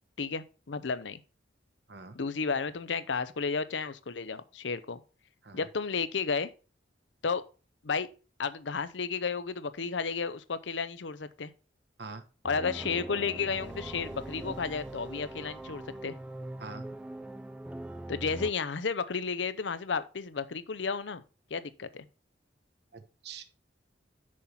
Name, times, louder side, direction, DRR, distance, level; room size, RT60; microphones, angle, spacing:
voice 1, 0.2-1.2 2.1-5.0 5.5-6.5 7.2-7.4 7.8-8.1 8.4-11.5 12.4-16.2 18.1-21.2 21.5-22.1, left 5 dB, 80° left, 0.7 m, -32 dB
sound 1, 12.4-18.5, right 1 dB, 5° right, 0.4 m, -42 dB
sound 2, 13.5-17.3, right 3 dB, 80° right, 0.7 m, -56 dB
voice 2, 16.6-17.0 22.9-23.4, right 4 dB, 60° right, 1.1 m, -44 dB
6.4 x 5.7 x 5.5 m
head